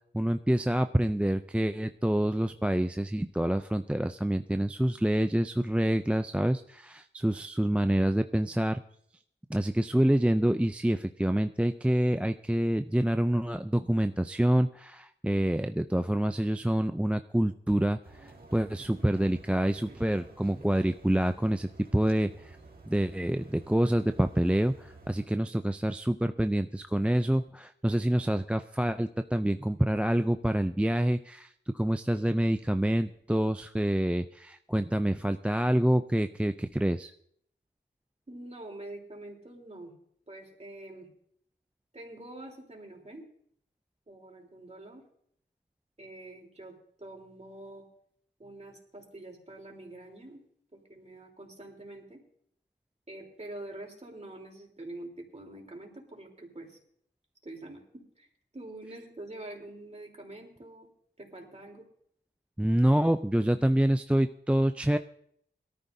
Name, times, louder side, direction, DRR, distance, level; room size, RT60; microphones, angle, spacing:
voice 1, 0.1-8.8 9.5-22.6 22.9-37.1 62.6-65.0, right 1 dB, 5° right, 10 dB, 0.4 m, -27 dB
Tiger Training, 18.0-25.3, right 2 dB, 50° right, 2.1 m, -52 dB
voice 2, 38.3-39.9 40.3-41.1 41.9-43.2 44.1-45.0 46.0-47.9 48.4-50.4 50.7-52.2 53.1-56.8 57.4-58.3 58.5-60.9 61.2-61.9, right 1 dB, 35° right, -1 dB, 3.5 m, -45 dB
22.5 x 13.5 x 2.7 m, 0.68 s
wide cardioid pair, 85°, 19 cm